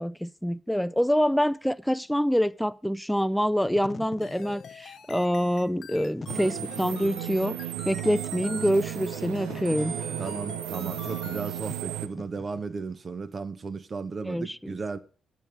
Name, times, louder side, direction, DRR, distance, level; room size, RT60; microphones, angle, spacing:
voice 1, 0.0-7.6 7.8-9.9 14.3-14.5, equal, 5° left, 0.7 m, -26 dB
Wind / Fire, 3.5-13.0, left 5 dB, 45° left, 0.6 m, -46 dB
sound 1, 4.2-11.5, left 7 dB, 65° left, 1.2 m, -47 dB
sound 2, 6.3-12.1, right 11 dB, 80° right, 0.7 m, -34 dB
voice 2, 10.2-15.0, right 4 dB, 45° right, 1.1 m, -35 dB
9.0 x 9.0 x 5.3 m
hypercardioid pair, 45°, 0 cm